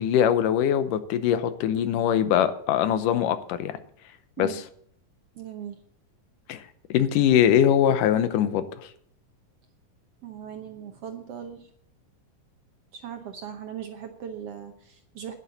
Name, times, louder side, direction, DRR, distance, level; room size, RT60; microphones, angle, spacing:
voice 1, 0.0-3.8 4.4-4.6 6.5-6.6 6.9-8.9, left 9 dB, 85° left, 11 dB, 2.4 m, -22 dB
voice 2, 5.4-5.8 10.2-11.7 12.9-15.3, right 9 dB, 70° right, 6 dB, 1.6 m, -39 dB
10.5 x 9.9 x 6.8 m, 0.64 s
omnidirectional pair, 3.7 m